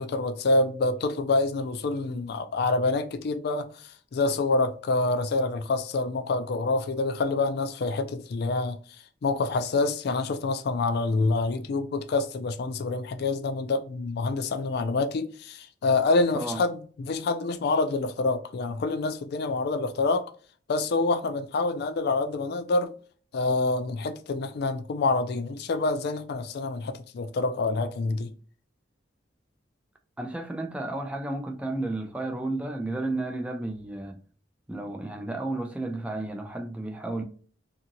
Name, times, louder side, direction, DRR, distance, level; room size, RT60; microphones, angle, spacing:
voice 1, 0.0-8.8 9.2-20.2 20.7-22.9 23.3-28.3, left 3 dB, 60° left, 0.4 m, -27 dB
voice 2, 30.2-34.2 34.7-37.2, right 2 dB, 5° right, 0.5 m, -32 dB
2.9 x 2.5 x 2.6 m
head